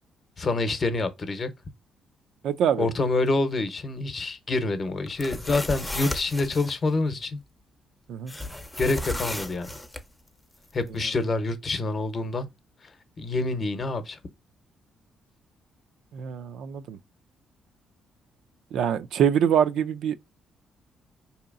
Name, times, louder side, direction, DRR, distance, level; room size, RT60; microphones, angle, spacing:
voice 1, 0.4-1.5 2.8-7.4 8.8-9.7 10.7-12.5 13.2-14.2, left 3 dB, 40° left, 0.7 m, -27 dB
voice 2, 2.4-2.9 8.1-8.3 10.9-11.0 16.1-17.0 18.7-20.2, right 8 dB, 75° right, 0.3 m, -24 dB
sound 1, 5.1-6.7 8.3-10.0, left 1 dB, 10° left, 0.5 m, -34 dB
4.5 x 2.8 x 2.5 m
cardioid pair, 90°, 0 cm